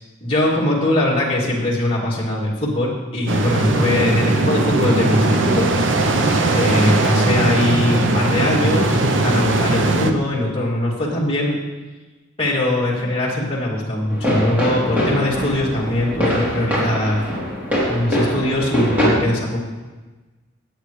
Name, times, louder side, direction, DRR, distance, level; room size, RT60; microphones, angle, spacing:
voice 1, 0.2-6.0 6.5-11.5 12.4-17.2 17.9-19.6, left 1 dB, 30° left, -6 dB, 2.8 m, -21 dB
sound 1, 3.3-10.1, right 2 dB, 70° right, 0.8 m, -19 dB
sound 2, 14.1-19.1, equal, 10° right, 3.4 m, -22 dB
17.5 x 8.3 x 3.3 m, 1.2 s
head